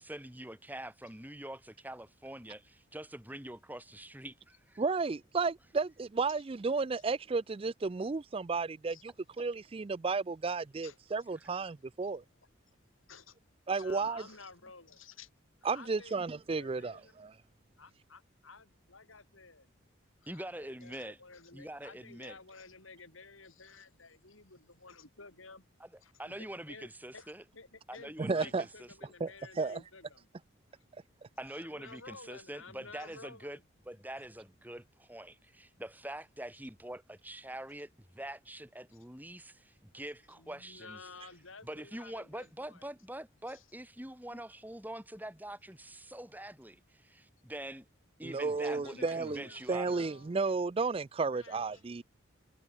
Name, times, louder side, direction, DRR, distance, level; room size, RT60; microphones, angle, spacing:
voice 1, 0.0-4.8 11.3-11.4 20.3-21.2 21.5-22.4 25.8-25.9 26.2-27.4 27.9-29.1 31.4-33.6 33.9-41.0 41.6-47.9 48.2-50.1, right 1 dB, 10° right, 4.3 m, -45 dB
voice 2, 4.8-12.2 13.7-14.2 15.6-17.3 28.2-28.6 29.2-29.3 29.6-29.8 48.2-52.0, right 4 dB, 25° right, 0.4 m, -33 dB
voice 3, 13.7-15.3 15.6-16.2 16.6-17.1 17.8-19.7 20.2-25.7 26.0-30.3 30.7-30.8 31.6-33.6 38.9-39.0 40.3-42.9 43.5-43.7 44.3-44.4 48.5-49.6 49.9-50.4 51.3-51.8, left 4 dB, 80° left, 7.2 m, -53 dB
head